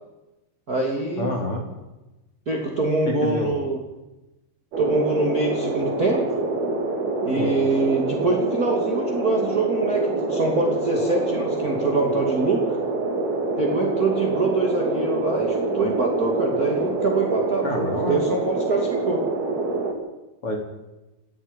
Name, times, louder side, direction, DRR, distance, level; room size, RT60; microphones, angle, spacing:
voice 1, 0.7-1.3 2.5-3.8 4.8-6.2 7.2-12.8 13.6-19.2, right 2 dB, 25° right, 0 dB, 2.6 m, -24 dB
voice 2, 1.2-1.6 3.1-3.5 7.3-7.5 17.6-18.2 20.4-20.6, left 2 dB, 35° left, 2 dB, 3.8 m, -27 dB
sound 1, 4.7-19.9, right 3 dB, 65° right, 5.2 m, -26 dB
29.5 x 18.5 x 5.5 m, 1.0 s
omnidirectional pair, 4.9 m